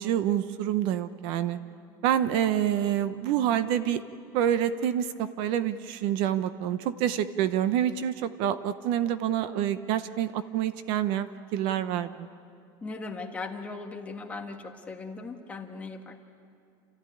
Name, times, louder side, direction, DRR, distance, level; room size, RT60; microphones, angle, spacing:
voice 1, 0.0-1.6 2.0-4.0 4.3-12.3, right 10 dB, 60° right, 13 dB, 0.8 m, -27 dB
voice 2, 12.8-16.2, left 3 dB, 15° left, 3 dB, 1.5 m, -38 dB
28.5 x 14.5 x 9.9 m, 2.4 s
cardioid pair, 160°, 10 cm